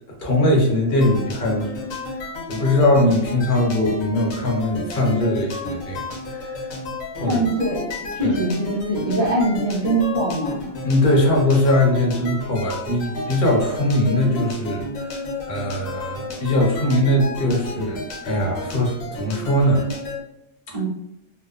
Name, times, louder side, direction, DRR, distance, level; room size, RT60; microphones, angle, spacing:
voice 1, 0.2-1.7 2.2-6.7 7.1-7.4 8.2-8.3 10.8-15.0 15.5-19.8, left 1 dB, 45° left, -1 dB, 0.8 m, -21 dB
sound 1, 1.0-20.2, left 2 dB, 90° left, 1.1 m, -32 dB
voice 2, 7.3-7.9 8.1-10.7 20.7-20.9, right 1 dB, 55° right, -5 dB, 0.4 m, -22 dB
2.9 x 2.0 x 2.3 m, 0.83 s
omnidirectional pair, 1.4 m